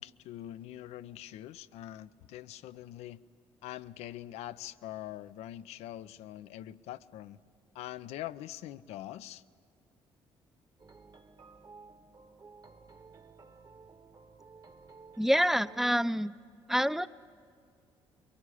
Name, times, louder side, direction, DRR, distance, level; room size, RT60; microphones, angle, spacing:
voice 1, 0.0-3.2 3.6-7.4 7.7-9.4, left 13 dB, 80° left, 15 dB, 0.6 m, -43 dB
sound 1, 10.8-16.0, right 4 dB, 40° right, 1.4 m, -55 dB
voice 2, 15.2-16.3 16.7-17.1, equal, 5° right, 14 dB, 0.6 m, -27 dB
23.5 x 22.5 x 9.9 m, 2.2 s
supercardioid pair, 60°, 11 cm